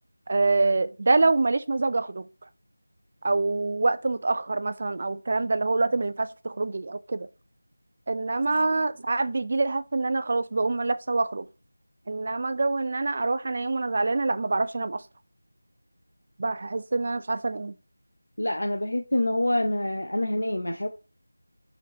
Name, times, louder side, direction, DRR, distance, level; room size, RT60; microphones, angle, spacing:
voice 1, 0.3-2.3 3.2-7.3 8.1-11.5 12.1-15.0 16.4-17.7, right 3 dB, 40° right, 0.3 m, -25 dB
voice 2, 18.4-20.9, left 1 dB, 80° left, 0.6 m, -26 dB
5.0 x 3.2 x 2.6 m
figure-of-eight pair, 170°, 0 cm